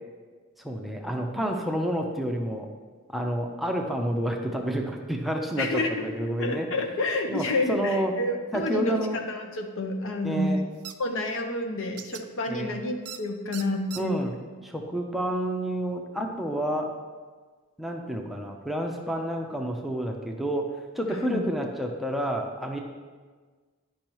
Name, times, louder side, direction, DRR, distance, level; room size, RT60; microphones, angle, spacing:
voice 1, 0.6-2.7 3.1-6.7 7.3-8.1 8.5-9.2 10.2-10.6 12.5-12.8 14.0-14.3 14.6-16.9 17.8-20.6 20.9-22.8, equal, ahead, 1 dB, 0.6 m, -29 dB
voice 2, 5.6-10.5 11.0-14.2 21.2-21.4, left 2 dB, 65° left, 4 dB, 0.8 m, -29 dB
sound 1, 10.8-10.9 12.0-12.2 13.1-13.2 13.5-14.0, right 11 dB, 90° right, 0.5 m, -39 dB
10.5 x 5.4 x 3.0 m, 1.5 s
head